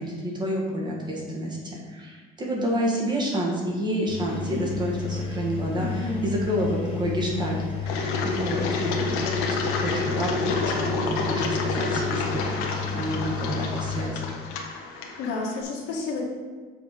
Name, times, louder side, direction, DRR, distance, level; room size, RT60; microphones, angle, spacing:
voice 1, 0.0-14.2, equal, 20° right, -2 dB, 1.6 m, -29 dB
Engine, 4.1-14.1, left 5 dB, 25° left, 1.3 m, -32 dB
voice 2, 5.7-6.3 14.9-16.2, left 3 dB, 65° left, -3 dB, 1.7 m, -31 dB
Engine 2, 7.9-15.6, left 4 dB, 90° left, 1.1 m, -29 dB
7.1 x 4.5 x 5.1 m, 1.5 s
cardioid pair, 155°, 20 cm